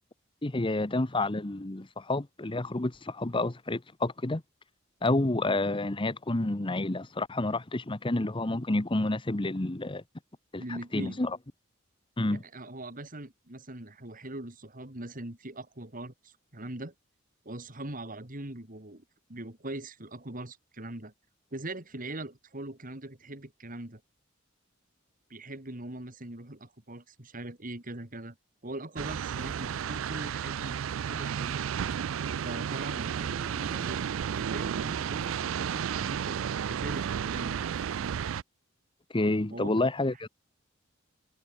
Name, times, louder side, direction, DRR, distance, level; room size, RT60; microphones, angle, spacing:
voice 1, 0.4-4.4 5.0-10.0 10.5-11.4 12.2-12.4 39.1-40.3, left 2 dB, 25° left, 1.0 m, -29 dB
voice 2, 10.6-11.2 12.3-16.9 17.4-19.0 19.3-21.1 21.5-24.0 25.3-28.4 28.6-31.6 32.4-34.1 34.3-37.7 39.5-39.7, right 1 dB, 45° right, 3.2 m, -41 dB
sound 1, 29.0-38.4, right 8 dB, 90° right, 0.4 m, -32 dB
head